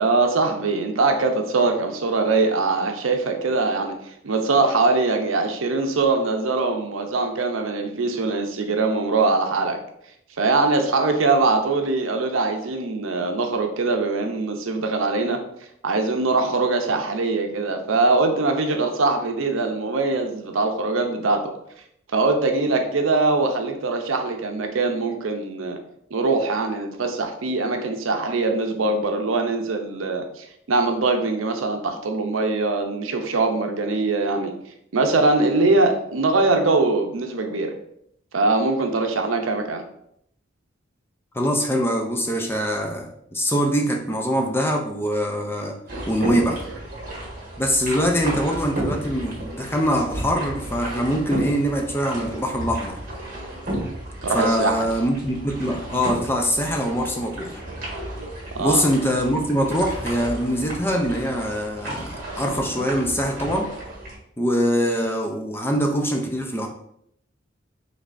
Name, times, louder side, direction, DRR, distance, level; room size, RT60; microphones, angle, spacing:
voice 1, 0.0-4.0 4.2-9.8 10.4-15.4 15.8-21.5 22.1-25.8 26.1-34.5 34.9-37.7 38.3-39.8 45.9-46.0 54.2-54.9 58.5-58.8, right 3 dB, 80° right, 5 dB, 0.6 m, -22 dB
voice 2, 41.3-45.7 46.1-46.7 47.6-53.0 54.3-57.6 58.6-63.7 64.4-66.7, equal, 10° left, 2 dB, 0.5 m, -23 dB
sound 1, 45.9-64.1, right 1 dB, 45° right, 1.5 m, -33 dB
5.1 x 3.3 x 2.6 m, 0.72 s
head